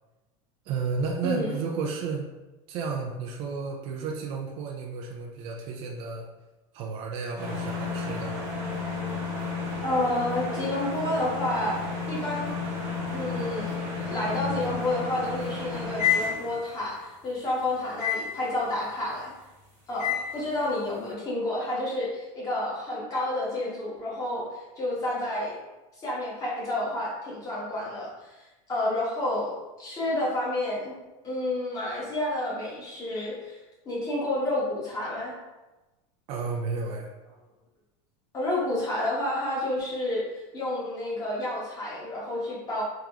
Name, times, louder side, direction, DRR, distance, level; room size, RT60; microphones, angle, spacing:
voice 1, 0.7-2.3 2.7-6.3 6.7-8.4 36.3-37.1, right 4 dB, 30° right, 0 dB, 0.4 m, -32 dB
voice 2, 1.2-1.6 9.8-11.8 12.1-12.5 13.1-19.3 19.9-25.6 26.0-28.4 28.7-31.0 31.2-33.6 33.8-35.3 38.3-40.2 40.5-42.8, left 1 dB, 20° left, -7 dB, 1.3 m, -30 dB
sound 1, 7.4-16.8 18.0-18.4 20.0-20.4, left 5 dB, 15° right, 1.1 m, -31 dB
3.6 x 2.9 x 3.5 m, 1.1 s
supercardioid pair, 175°, 17 cm